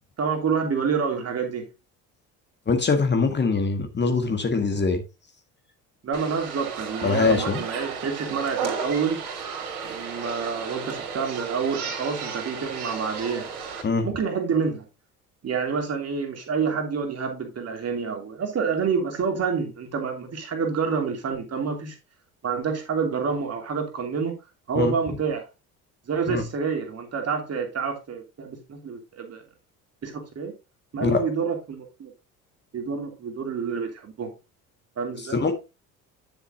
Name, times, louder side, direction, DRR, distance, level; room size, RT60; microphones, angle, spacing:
voice 1, 0.2-1.7 6.0-9.2 9.8-13.5 14.0-14.9 15.4-22.0 22.4-24.4 24.7-25.5 26.1-29.4 30.0-30.5 30.9-32.1 32.7-34.3 35.0-35.4, right 5 dB, 35° right, 3.0 m, -28 dB
voice 2, 2.7-5.0 7.0-7.7 13.8-14.1 24.8-24.9 26.3-26.4 31.0-31.3 35.3-35.5, left 4 dB, 25° left, 1.9 m, -23 dB
sound 1, 6.1-13.8, right 5 dB, 70° right, 3.6 m, -34 dB
11.0 x 6.9 x 2.8 m
figure-of-eight pair, 60°, 45 cm